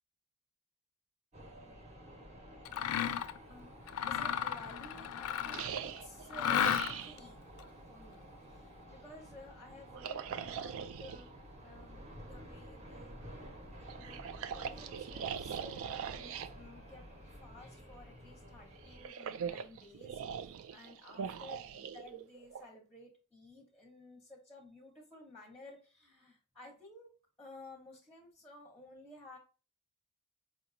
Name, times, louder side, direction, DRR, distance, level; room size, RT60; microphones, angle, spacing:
sound 1, 1.3-19.1, equal, 30° right, 1.0 m, -52 dB
Mechanisms, 2.6-3.4 3.9-5.8 6.3-7.2, left 9 dB, 75° left, 0.3 m, -33 dB
voice 1, 4.0-7.5 7.9-11.3 11.6-13.2 13.9-17.0 17.4-27.1 27.4-29.4, left 1 dB, 5° left, 0 dB, 0.8 m, -54 dB
sound 2, 5.5-7.2 9.9-11.2 13.9-16.5 18.8-22.7, right 7 dB, 65° right, 0.3 m, -41 dB
4.7 x 2.9 x 2.5 m, 0.35 s
head